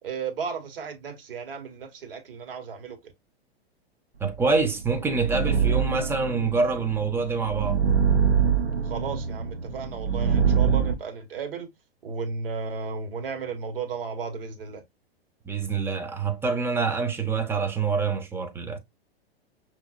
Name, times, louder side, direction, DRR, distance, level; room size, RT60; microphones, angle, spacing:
voice 1, 0.0-3.0 8.8-11.7 12.0-14.8, right 5 dB, 60° right, 1.8 m, -34 dB
voice 2, 4.2-7.8 15.4-18.8, right 4 dB, 5° right, 0.7 m, -26 dB
sound 1, 4.5-10.9, right 7 dB, 75° right, 1.0 m, -24 dB
6.1 x 3.1 x 2.4 m
figure-of-eight pair, 105°, 32 cm